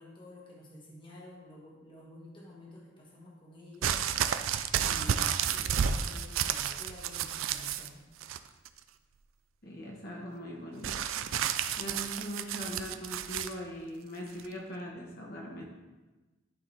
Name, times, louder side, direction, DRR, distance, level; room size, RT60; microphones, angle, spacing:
voice 1, 0.0-3.9 4.7-8.0, left 1 dB, 25° left, -3 dB, 1.2 m, -50 dB
sound 1, 3.8-7.9 8.2-8.8 10.8-13.5 14.4-14.5, right 8 dB, 85° right, 0.4 m, -31 dB
voice 2, 9.6-11.1 11.8-15.6, equal, 50° left, -1 dB, 1.2 m, -41 dB
11.5 x 3.8 x 4.1 m, 1.2 s
head